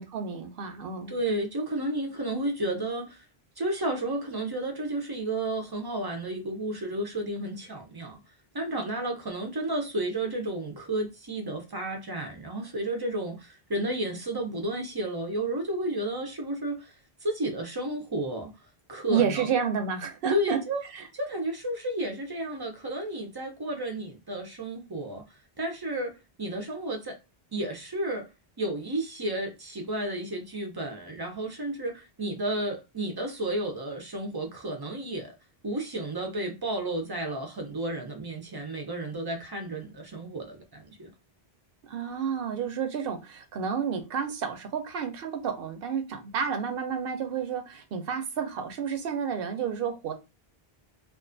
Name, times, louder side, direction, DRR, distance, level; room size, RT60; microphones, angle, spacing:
voice 1, 0.0-1.1 19.1-20.6 20.9-21.0 41.8-50.1, right 7 dB, 70° right, 0.7 m, -30 dB
voice 2, 1.1-3.2 3.6-8.2 8.5-16.9 17.2-18.5 18.9-19.5 20.3-20.8 21.1-25.2 25.6-27.2 27.5-28.3 28.6-35.3 35.6-41.1, right 1 dB, 40° right, 0.3 m, -32 dB
2.3 x 2.3 x 2.5 m
omnidirectional pair, 1.0 m